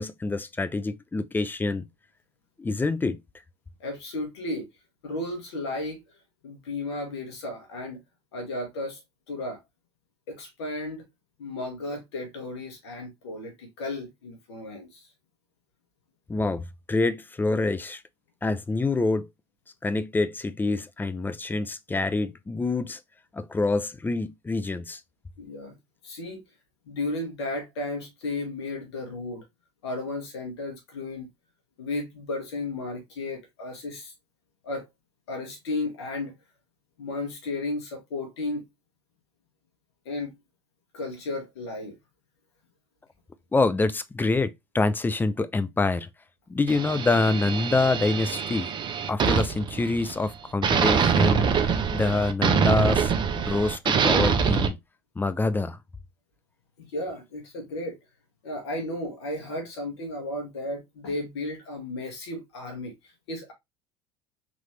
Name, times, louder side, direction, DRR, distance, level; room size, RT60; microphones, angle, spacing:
voice 1, 0.0-1.8 2.6-3.2 16.3-18.0 18.4-19.3 19.8-23.0 23.3-25.0 43.5-46.1 46.5-48.7 49.1-51.5 51.9-53.1 53.5-54.8 55.2-55.8, left 3 dB, 15° left, 0.5 m, -26 dB
voice 2, 3.8-4.7 5.0-6.0 6.4-8.0 8.3-9.0 9.3-9.6 10.3-11.0 11.4-15.1 25.4-25.7 26.0-26.4 26.9-29.4 29.8-31.3 31.8-34.1 34.6-34.8 35.3-36.3 37.0-38.6 40.1-40.3 40.9-42.0 56.8-58.0 58.4-62.9 63.3-63.5, left 2 dB, 75° left, 1.7 m, -34 dB
sound 1, 46.7-50.3 50.6-54.7, right 6 dB, 35° right, 0.8 m, -24 dB
4.0 x 3.1 x 3.1 m
hypercardioid pair, 75°, 14 cm